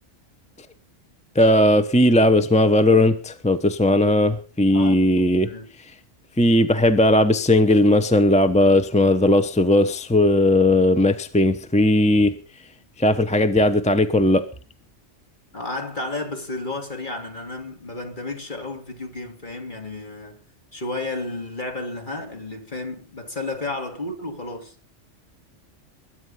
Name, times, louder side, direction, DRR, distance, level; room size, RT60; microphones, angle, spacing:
voice 1, 1.3-5.5 6.4-12.4 13.0-14.4, left 1 dB, 5° left, 0.8 m, -17 dB
voice 2, 4.7-5.7 15.5-20.4 20.7-24.7, left 2 dB, 40° left, 3.0 m, -32 dB
21.5 x 9.5 x 5.6 m
omnidirectional pair, 1.3 m